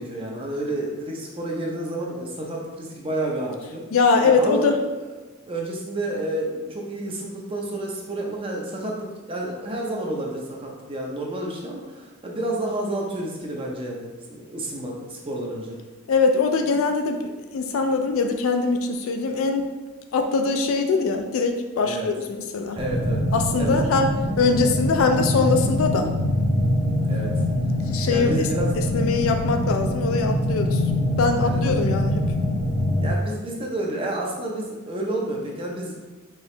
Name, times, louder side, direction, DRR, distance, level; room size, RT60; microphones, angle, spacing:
voice 1, 0.0-3.9 4.2-4.7 5.4-15.8 21.8-22.1 22.7-23.2 23.6-23.9 27.0-27.3 28.1-28.7 31.4-31.8 33.0-36.0, right 1 dB, 25° right, -1 dB, 0.6 m, -30 dB
voice 2, 3.9-4.8 16.1-19.7 20.1-22.8 23.3-24.1 24.4-26.1 27.9-28.5 28.9-30.8 31.2-32.2, left 4 dB, 65° left, 5 dB, 0.4 m, -22 dB
sound 1, 22.8-33.1, left 1 dB, 10° left, 0.8 m, -24 dB
4.6 x 2.9 x 3.2 m, 1.2 s
head